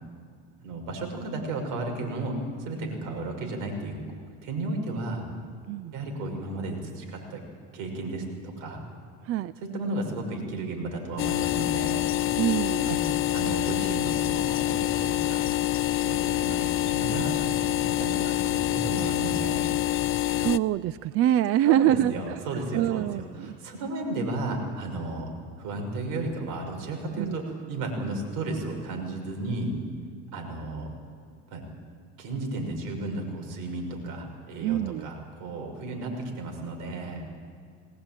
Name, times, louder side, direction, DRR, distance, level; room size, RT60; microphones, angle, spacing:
voice 1, 0.6-4.0 4.4-5.3 5.9-7.4 7.7-8.8 9.7-12.0 12.8-13.0 13.3-15.5 16.0-19.7 21.6-23.1 23.4-25.3 25.6-29.8 30.3-30.9 31.5-31.6 32.2-37.2, right 2 dB, 70° right, 2 dB, 6.1 m, -33 dB
sound 1, 11.2-20.6, left 14 dB, 40° left, 0.6 m, -26 dB
voice 2, 12.4-12.9 20.3-23.6 27.2-27.4 34.6-35.1, right 12 dB, 45° right, 16 dB, 0.5 m, -25 dB
21.0 x 18.5 x 9.1 m, 2.3 s
supercardioid pair, 120°, 32 cm